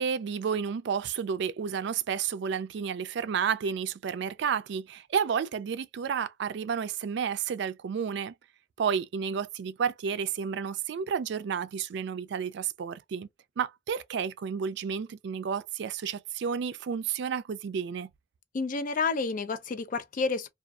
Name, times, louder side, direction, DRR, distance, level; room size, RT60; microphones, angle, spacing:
voice 1, 0.0-8.3 8.8-13.3 13.6-18.1, right 7 dB, 65° right, 0.3 m, -31 dB
voice 2, 18.5-20.5, left 4 dB, 45° left, 0.4 m, -30 dB
2.5 x 2.3 x 2.3 m
head